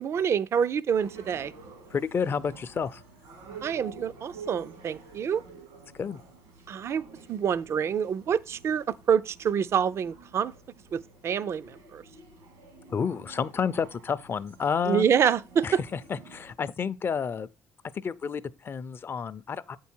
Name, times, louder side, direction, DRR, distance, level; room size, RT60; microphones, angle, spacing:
voice 1, 0.0-1.5 3.6-5.4 6.7-7.0 7.3-10.5 10.9-12.0 14.9-15.8, right 7 dB, 50° right, 0.4 m, -27 dB
sound 1, 0.9-16.5, right 4 dB, 90° right, 2.0 m, -49 dB
voice 2, 1.9-3.0 5.9-6.2 12.9-15.0 15.6-17.5 17.9-19.8, left 6 dB, 40° left, 0.4 m, -30 dB
8.0 x 4.7 x 4.4 m
supercardioid pair, 75°, 6 cm